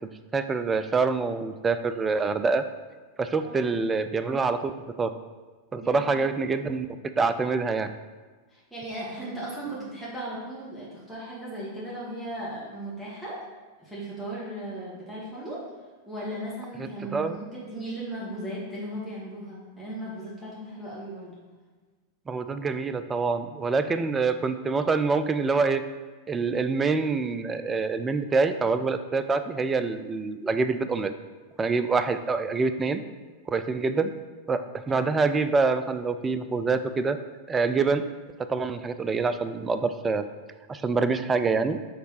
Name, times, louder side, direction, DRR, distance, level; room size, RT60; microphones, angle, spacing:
voice 1, 0.3-2.7 3.2-4.7 5.0-5.1 5.7-7.9 16.8-17.4 22.3-25.8 26.3-31.1 31.6-33.0 33.5-34.1 34.5-37.2 37.5-38.0 38.4-40.2 40.7-41.8, right 4 dB, 15° right, 10 dB, 0.4 m, -26 dB
voice 2, 5.8-6.3 8.5-13.5 13.8-15.6 16.1-21.4 34.9-35.1, right 1 dB, 5° left, -9 dB, 1.8 m, -37 dB
6.7 x 3.3 x 4.8 m, 1.4 s
figure-of-eight pair, 90°, 0 cm